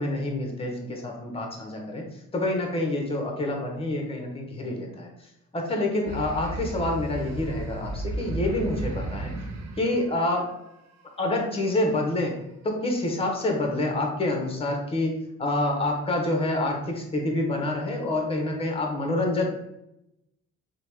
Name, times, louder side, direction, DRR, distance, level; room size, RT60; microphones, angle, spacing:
voice 1, 0.0-2.1 2.3-5.1 5.5-9.3 9.8-10.5 11.2-12.4 12.6-19.4, left 2 dB, 20° left, 1 dB, 0.8 m, -27 dB
sound 1, 6.1-11.0, right 2 dB, 65° right, 0.6 m, -34 dB
2.8 x 2.2 x 3.4 m, 0.84 s
cardioid pair, 90°, 30 cm